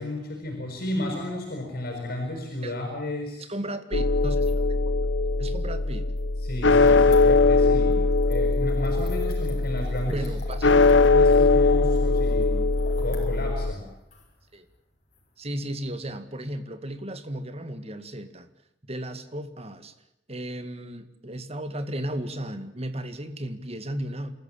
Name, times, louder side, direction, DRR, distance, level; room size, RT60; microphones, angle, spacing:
voice 1, 0.0-3.5 6.4-8.0 8.3-10.2 10.6-12.6 13.0-13.9, left 1 dB, 55° left, 6.4 m, -33 dB
voice 2, 3.5-4.8 5.4-6.1 10.0-10.9 14.5-14.7 15.4-18.5 18.9-19.9 20.3-24.3, right 1 dB, 35° right, 2.1 m, -35 dB
sound 1, 3.9-13.7, left 3 dB, 85° left, 1.1 m, -21 dB
sound 2, 4.2-16.1, left 2 dB, 40° left, 6.2 m, -48 dB
27.5 x 14.5 x 8.9 m
head